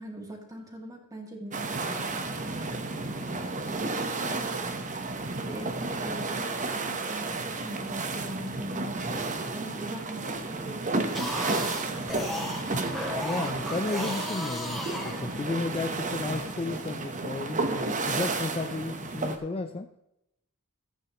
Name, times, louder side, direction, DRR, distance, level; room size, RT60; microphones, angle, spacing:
voice 1, 0.0-2.1 3.2-4.6 5.3-9.2 9.5-12.0, right 1 dB, 15° right, 0 dB, 2.3 m, -42 dB
sound 1, 1.5-19.4, right 3 dB, 35° right, 1.0 m, -32 dB
sound 2, 11.1-15.7, left 1 dB, ahead, 2.0 m, -35 dB
voice 2, 13.2-19.9, left 3 dB, 25° left, 7 dB, 0.5 m, -33 dB
14.5 x 8.8 x 3.0 m, 0.83 s
head